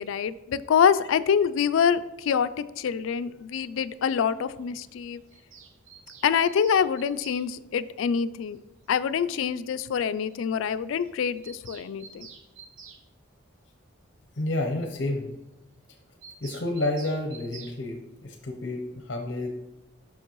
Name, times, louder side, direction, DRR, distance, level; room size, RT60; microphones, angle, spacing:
voice 1, 0.0-5.2 6.2-8.6 8.9-12.3, left 7 dB, 80° left, 15 dB, 0.3 m, -25 dB
Bird vocalization bird call bird song, 5.3-7.4 8.9-9.0 9.2-9.3 9.6-9.7 10.0-10.1 10.3-10.4 10.6-10.8 11.0-13.0 16.2-17.8, right 6 dB, 85° right, 0.8 m, -48 dB
voice 2, 14.4-15.3 16.4-19.5, left 1 dB, 60° left, 3 dB, 0.7 m, -30 dB
7.1 x 5.9 x 3.0 m, 0.92 s
head